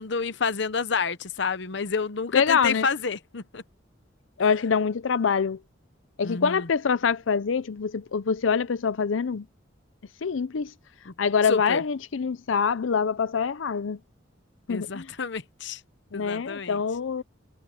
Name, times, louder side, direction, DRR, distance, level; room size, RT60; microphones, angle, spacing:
voice 1, 0.0-3.6 6.2-6.7 11.1-11.2 11.5-11.8 14.7-15.8 16.1-16.8, left 5 dB, 65° left, 0.9 m, -29 dB
voice 2, 2.3-2.9 4.4-5.6 6.2-9.5 10.2-10.7 11.2-14.0 14.7-15.1 16.1-17.2, left 6 dB, 90° left, 0.6 m, -25 dB
head